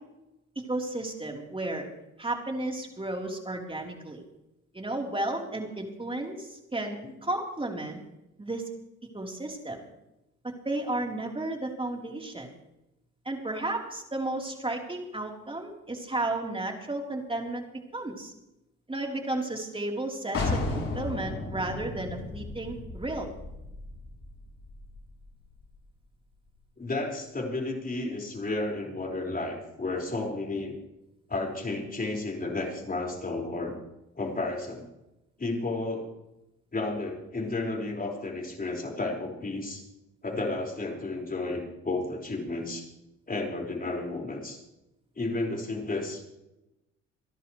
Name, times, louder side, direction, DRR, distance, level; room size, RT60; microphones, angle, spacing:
voice 1, 0.7-1.8 2.2-4.2 4.7-8.0 8.4-8.7 9.1-9.8 10.4-12.5 13.3-17.7 17.9-18.3 18.9-23.3, right 2 dB, 20° right, 0 dB, 4.1 m, -33 dB
sound 1, 20.3-25.9, left 3 dB, 50° left, 5.9 m, -35 dB
voice 2, 26.8-30.8 31.3-33.8 34.2-34.9 35.4-36.1 36.7-39.8 40.2-42.9 43.3-44.6 45.2-46.3, left 2 dB, 30° left, -1 dB, 5.5 m, -32 dB
28.5 x 11.0 x 3.4 m, 0.92 s
supercardioid pair, 70°, 30 cm